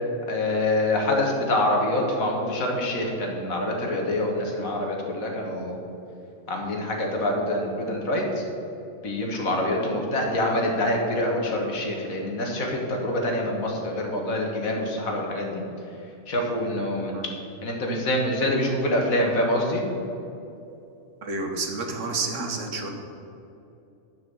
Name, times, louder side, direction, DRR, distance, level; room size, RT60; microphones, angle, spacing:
voice 1, 0.3-5.8 6.5-8.5 9.0-15.6 16.3-17.1 17.6-19.8, left 1 dB, 80° left, 0 dB, 1.9 m, -25 dB
voice 2, 21.2-22.9, right 3 dB, 65° right, 3 dB, 1.4 m, -30 dB
9.7 x 4.8 x 7.8 m, 2.7 s
omnidirectional pair, 1.4 m